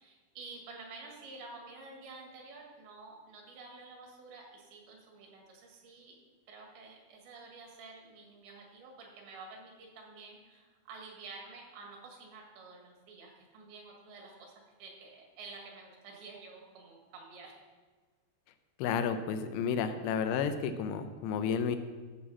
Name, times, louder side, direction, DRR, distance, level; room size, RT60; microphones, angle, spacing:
voice 1, 0.0-6.2 6.5-14.5 14.8-17.6, right 3 dB, 75° right, 0 dB, 4.0 m, -50 dB
voice 2, 18.8-21.8, left 7 dB, 80° left, 9 dB, 2.9 m, -31 dB
14.0 x 7.2 x 4.2 m, 1.4 s
omnidirectional pair, 5.2 m